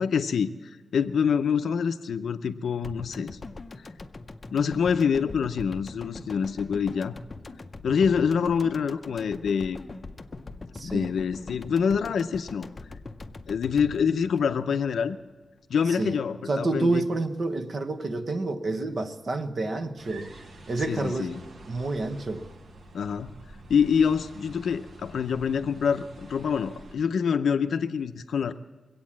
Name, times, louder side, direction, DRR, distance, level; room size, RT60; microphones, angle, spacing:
voice 1, 0.0-3.4 4.5-7.2 7.8-9.8 10.8-12.7 13.5-15.2 15.7-17.0 20.9-21.4 22.9-23.4 23.7-28.5, left 6 dB, 75° left, 9 dB, 0.5 m, -26 dB
sound 1, 2.8-15.2 15.5-15.6, left 3 dB, 30° left, 0.6 m, -42 dB
voice 2, 10.7-11.1 15.9-16.2 16.5-20.3 20.7-21.3 21.7-22.5, right 2 dB, 40° right, 6 dB, 0.9 m, -29 dB
sound 2, 20.0-26.9, right 1 dB, 60° right, 1.3 m, -47 dB
22.5 x 8.6 x 7.3 m, 1.3 s
wide cardioid pair, 160°, 0 cm